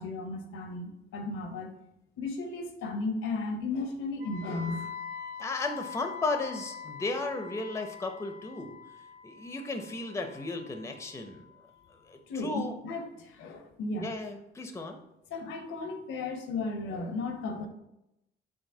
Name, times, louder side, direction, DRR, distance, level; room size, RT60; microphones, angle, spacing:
voice 1, 0.0-1.7 2.2-4.9 12.3-14.1 15.3-17.7, left 3 dB, 80° left, 5 dB, 0.7 m, -35 dB
Wind instrument woodwind instrument, 4.2-12.1, left 6 dB, 55° right, 1.2 m, -44 dB
voice 2, 5.4-8.7 9.2-11.4 12.1-12.7 14.0-15.0, left 3 dB, 15° left, 6 dB, 0.5 m, -34 dB
4.7 x 2.9 x 2.7 m, 0.85 s
cardioid pair, 90°, 20 cm